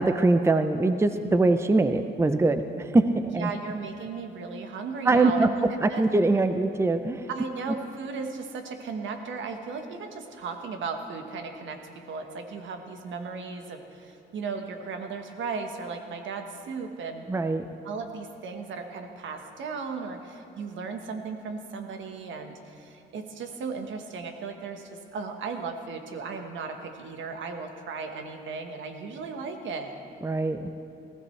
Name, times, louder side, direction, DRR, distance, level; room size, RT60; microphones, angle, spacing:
voice 1, 0.0-3.5 5.0-7.3 17.3-17.7 30.2-30.7, right 2 dB, 15° right, 9 dB, 0.6 m, -23 dB
voice 2, 3.4-5.6 5.9-6.0 7.3-17.2 17.8-30.0, right 4 dB, 70° right, 5 dB, 1.4 m, -36 dB
20.0 x 15.5 x 3.3 m, 2.6 s
cardioid pair, 90°, 20 cm